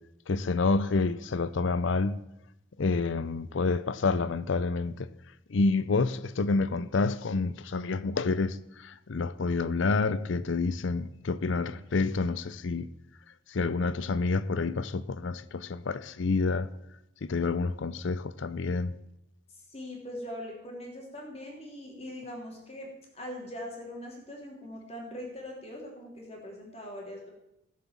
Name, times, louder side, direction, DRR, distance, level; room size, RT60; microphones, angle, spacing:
voice 1, 0.3-2.2 2.8-5.1 5.5-12.9 13.5-16.7 17.2-18.9, left 3 dB, 65° left, 0.5 m, -28 dB
voice 2, 19.5-27.3, left 1 dB, 30° left, 3.2 m, -41 dB
15.5 x 7.5 x 7.3 m
head